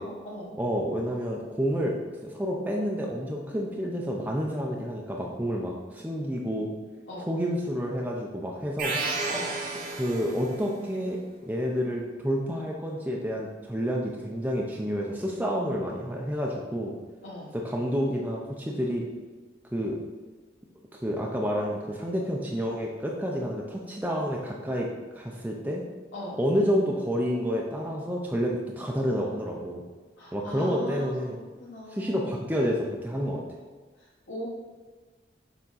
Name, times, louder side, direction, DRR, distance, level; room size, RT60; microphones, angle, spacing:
voice 1, 0.0-0.6 7.1-7.3 9.3-9.5 17.2-17.5 26.1-26.4 30.2-32.3 34.0-34.5, left 1 dB, 85° left, -8 dB, 1.2 m, -40 dB
voice 2, 0.6-6.7 7.3-9.0 10.0-11.2 11.4-16.9 17.5-19.1 19.7-20.0 20.9-24.9 25.1-25.8 26.4-29.8 30.3-31.4 31.9-33.4, equal, 10° right, -2 dB, 0.5 m, -29 dB
sound 1, 8.8-10.7, right 3 dB, 45° right, 0.7 m, -32 dB
7.0 x 3.6 x 4.0 m, 1.4 s
head